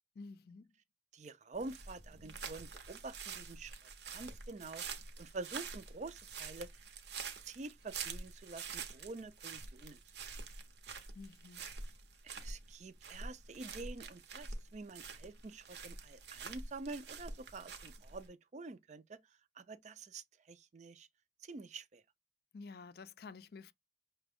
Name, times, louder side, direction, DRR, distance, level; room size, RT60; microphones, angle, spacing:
voice 1, 0.2-0.7 11.1-11.7 22.5-23.7, left 4 dB, 55° left, 0.4 m, -51 dB
voice 2, 1.1-4.8 5.2-6.7 7.4-10.0 12.2-19.2 19.6-21.1 21.4-22.0, right 3 dB, 40° right, 0.4 m, -47 dB
sound 1, 1.5-18.3, right 5 dB, 70° right, 0.8 m, -47 dB
5.8 x 2.2 x 3.5 m
head